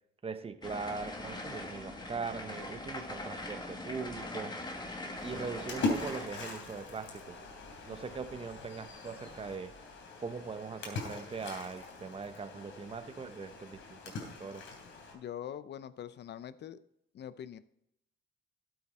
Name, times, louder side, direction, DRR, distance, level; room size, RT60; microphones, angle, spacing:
voice 1, 0.2-4.6 5.2-7.4 7.9-9.7 10.2-14.6, right 5 dB, 30° right, 10 dB, 1.0 m, -41 dB
sound 1, 0.6-6.3, left 2 dB, 20° left, 1.9 m, -41 dB
Splash splatter, 5.2-15.1, left 3 dB, 75° left, 3.2 m, -41 dB
voice 2, 15.1-16.8 17.1-17.6, left 10 dB, 60° left, 15 dB, 0.7 m, -43 dB
13.5 x 8.0 x 4.3 m, 0.79 s
cardioid pair, 90°, 20 cm